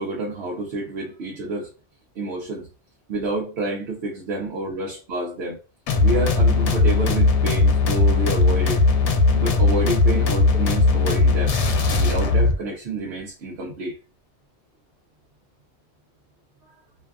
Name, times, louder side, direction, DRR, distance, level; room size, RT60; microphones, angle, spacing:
voice 1, 0.0-1.7 2.2-2.7 3.1-5.6 6.0-8.8 9.3-11.6 11.9-14.0, right 2 dB, 70° right, 0.9 m, -28 dB
sound 1, 5.9-12.6, left 3 dB, 85° left, 0.9 m, -18 dB
2.6 x 2.4 x 2.2 m
omnidirectional pair, 1.2 m